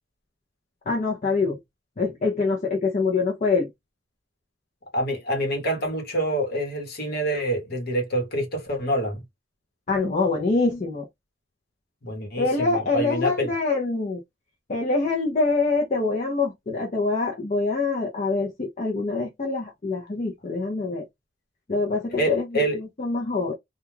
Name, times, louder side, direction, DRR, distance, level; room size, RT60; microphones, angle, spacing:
voice 1, 0.9-1.6 2.0-3.7 9.9-11.1 12.4-14.2 14.7-21.0 21.7-23.5, left 3 dB, 35° left, 0.6 m, -25 dB
voice 2, 4.9-9.2 12.0-13.5 22.2-22.8, right 1 dB, 50° left, 1.1 m, -26 dB
2.3 x 2.3 x 3.1 m
head